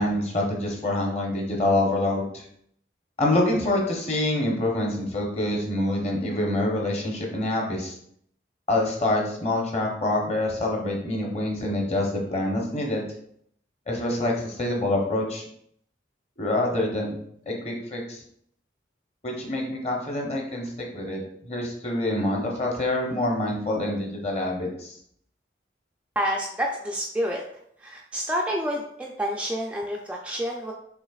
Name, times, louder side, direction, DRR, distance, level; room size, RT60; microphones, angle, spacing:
voice 1, 0.0-2.4 3.2-7.9 8.7-13.0 13.9-15.4 16.4-17.2 17.5-18.2 19.2-25.0, left 1 dB, 35° left, 0 dB, 0.9 m, -26 dB
voice 2, 26.2-27.4 27.8-30.7, equal, 5° right, -1 dB, 0.3 m, -28 dB
6.1 x 3.4 x 2.4 m, 0.69 s
head